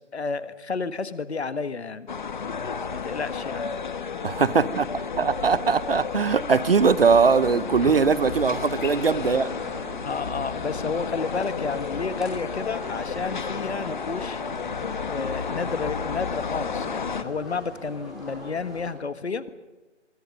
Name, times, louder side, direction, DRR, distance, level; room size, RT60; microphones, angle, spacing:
voice 1, 0.1-2.1 2.9-3.7 7.8-7.9 10.0-14.4 15.0-19.5, left 4 dB, 60° left, 13 dB, 1.6 m, -31 dB
sound 1, 2.1-17.2, left 5 dB, 40° left, 1.2 m, -32 dB
voice 2, 4.2-9.5, right 5 dB, 50° right, 18 dB, 0.9 m, -21 dB
sound 2, 7.1-18.9, left 1 dB, ahead, 4.9 m, -41 dB
27.5 x 23.0 x 5.3 m, 1.2 s
figure-of-eight pair, 155°, 37 cm